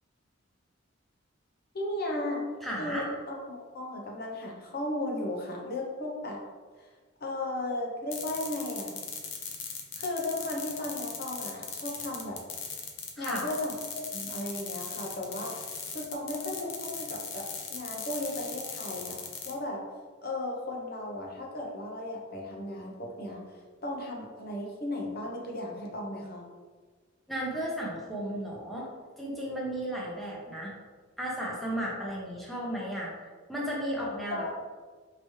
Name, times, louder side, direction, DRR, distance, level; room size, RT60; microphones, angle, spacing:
voice 1, 1.7-2.4 2.8-6.4 6.8-6.9 7.2-8.9 10.0-12.4 13.2-15.7 15.9-19.8 20.2-23.4 23.8-26.5 34.3-34.5, left 1 dB, 50° left, -1 dB, 0.7 m, -35 dB
voice 2, 2.6-3.1 13.2-13.4 27.3-28.9 29.2-30.7 31.2-34.5, equal, ahead, -5 dB, 0.7 m, -34 dB
sound 1, 8.1-19.5, left 5 dB, 80° left, 0.7 m, -39 dB
4.7 x 2.9 x 3.1 m, 1.5 s
head